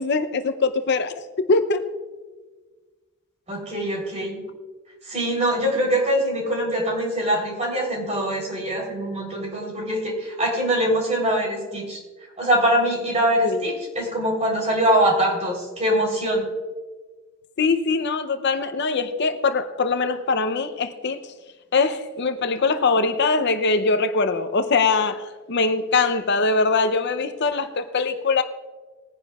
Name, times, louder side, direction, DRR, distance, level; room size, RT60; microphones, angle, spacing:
voice 1, 0.0-1.8 13.4-13.6 17.6-21.2 21.7-28.4, left 4 dB, 55° left, 0.6 m, -22 dB
voice 2, 3.5-4.4 5.1-12.0 12.4-16.5, right 1 dB, 35° right, 3.5 m, -23 dB
20.5 x 10.0 x 2.4 m
head